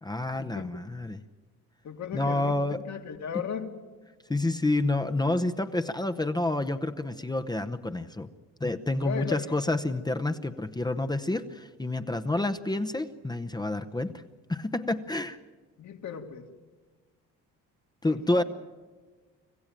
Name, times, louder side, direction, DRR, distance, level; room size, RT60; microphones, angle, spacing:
voice 1, 0.0-1.2 2.1-2.9 3.3-3.4 4.3-8.3 8.6-14.2 14.5-15.4 18.0-18.4, left 2 dB, 10° left, 8 dB, 0.8 m, -29 dB
voice 2, 1.8-3.7 9.0-9.4 15.8-16.4 18.0-18.4, left 8 dB, 60° left, 5 dB, 2.2 m, -36 dB
25.5 x 15.5 x 9.0 m, 1.4 s
cardioid pair, 90°, 32 cm